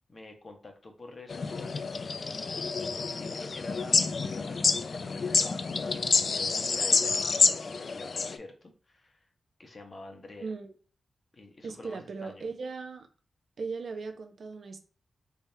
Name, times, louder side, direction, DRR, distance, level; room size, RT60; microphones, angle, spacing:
voice 1, 0.1-2.0 3.0-9.2 9.6-10.5 11.3-12.5, left 2 dB, 40° left, 0.9 m, -47 dB
sound 1, 1.3-8.4, left 4 dB, 60° left, 0.4 m, -28 dB
voice 2, 10.4-10.7 11.6-13.1 13.6-14.8, right 4 dB, 70° right, 0.6 m, -38 dB
3.4 x 3.3 x 2.7 m
cardioid pair, 70°, 0 cm